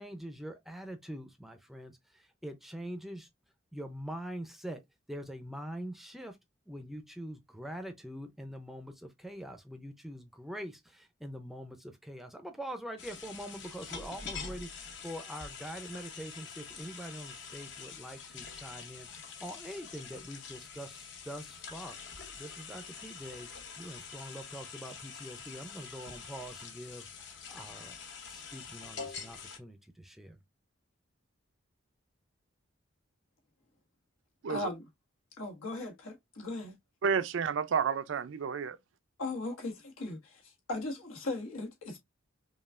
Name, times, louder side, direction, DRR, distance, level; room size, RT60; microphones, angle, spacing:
voice 1, 0.0-3.3 3.7-4.8 5.1-6.4 6.7-27.9 28.3-30.4, equal, ahead, 0.5 m, -44 dB
sound 1, 13.0-29.6, left 5 dB, 55° left, 0.8 m, -46 dB
voice 2, 34.5-34.8 35.4-36.7 39.2-42.0, left 2 dB, 90° left, 1.4 m, -38 dB
voice 3, 37.0-38.8, right 6 dB, 65° right, 0.4 m, -30 dB
5.4 x 2.3 x 2.4 m
head